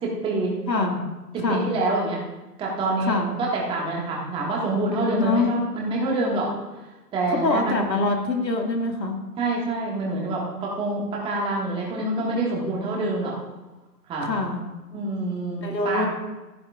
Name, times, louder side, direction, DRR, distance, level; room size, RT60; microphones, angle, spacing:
voice 1, 0.0-0.5 1.3-2.2 2.6-6.5 7.1-7.8 9.4-13.3 14.1-14.4 14.9-16.1, right 2 dB, 10° right, -3 dB, 1.7 m, -26 dB
voice 2, 0.7-1.1 1.4-1.7 3.1-3.4 5.2-5.5 7.3-9.2 14.2-14.7 15.6-16.1, left 3 dB, 80° left, 2 dB, 2.2 m, -24 dB
16.0 x 10.5 x 2.4 m, 1.1 s
figure-of-eight pair, 140°, 49 cm